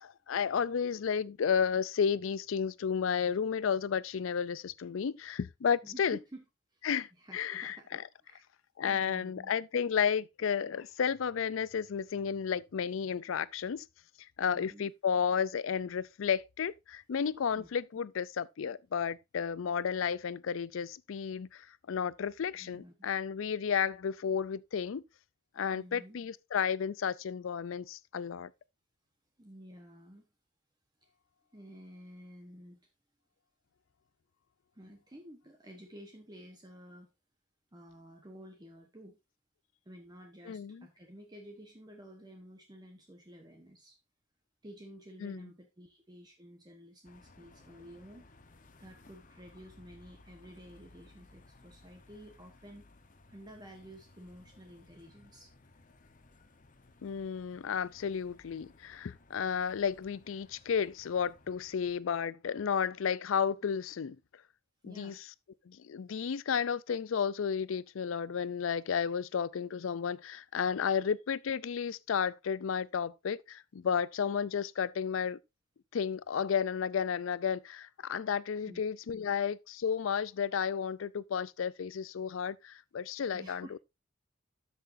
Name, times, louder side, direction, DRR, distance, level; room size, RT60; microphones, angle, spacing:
voice 1, 0.0-6.2 6.8-8.0 8.8-13.9 14.4-25.0 25.6-28.5 40.4-40.9 45.2-45.5 57.0-64.2 64.8-65.2 65.7-75.4 75.9-83.8, left 7 dB, 80° left, 0.4 m, -32 dB
voice 2, 5.8-6.4 6.7-6.8 7.2-8.4 8.9-9.5 14.4-14.9 17.5-17.7 22.6-22.9 25.7-26.2 29.4-30.2 31.0-31.1 31.5-32.9 34.7-37.1 37.7-39.2 39.8-44.0 44.6-48.5 48.8-52.8 53.3-55.5 61.5-61.6 64.8-65.2 78.7-78.8 79.3-79.4 83.3-83.7, equal, 20° right, 1.1 m, -52 dB
sound 1, 47.0-62.0, left 2 dB, 40° left, 0.9 m, -60 dB
13.0 x 6.2 x 2.6 m
head